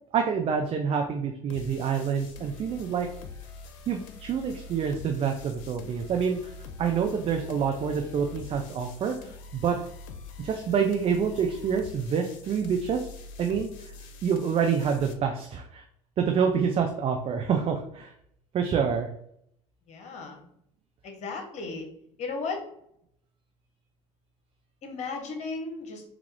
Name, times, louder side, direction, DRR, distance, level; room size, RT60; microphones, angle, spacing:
voice 1, 0.1-3.1 3.9-6.5 6.8-9.8 10.4-13.1 13.4-13.9 14.2-15.8 16.2-18.1 18.5-19.1, right 6 dB, 35° right, 3 dB, 0.5 m, -27 dB
sound 1, 1.5-15.1, left 4 dB, 70° left, 0.5 m, -45 dB
voice 2, 19.9-20.4 21.0-21.9 22.2-22.6 24.8-26.0, left 4 dB, 45° left, 4 dB, 1.0 m, -35 dB
3.4 x 2.4 x 3.3 m, 0.72 s
hypercardioid pair, 75°, 17 cm